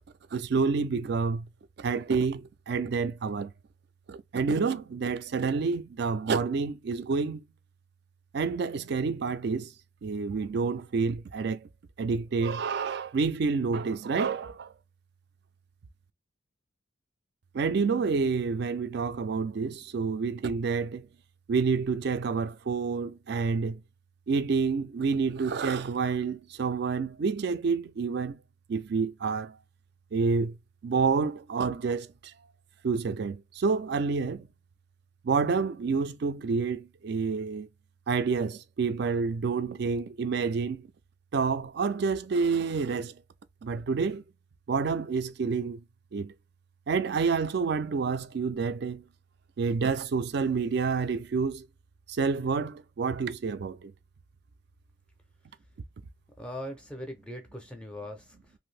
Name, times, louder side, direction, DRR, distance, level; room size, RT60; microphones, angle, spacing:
voice 1, 0.3-1.5 1.8-3.5 4.1-7.4 8.3-9.7 10.0-11.7 12.0-14.7 17.5-21.1 21.5-23.8 24.3-28.4 28.7-29.6 30.1-30.6 30.8-32.3 32.8-34.5 35.2-37.7 38.1-40.9 41.3-43.2 43.6-44.2 44.7-45.8 46.1-46.3 46.9-49.0 49.6-51.6 52.1-53.9, right 5 dB, 55° right, 0.3 m, -28 dB
voice 2, 56.4-58.5, left 1 dB, 5° left, 0.5 m, -40 dB
2.7 x 2.5 x 3.1 m
head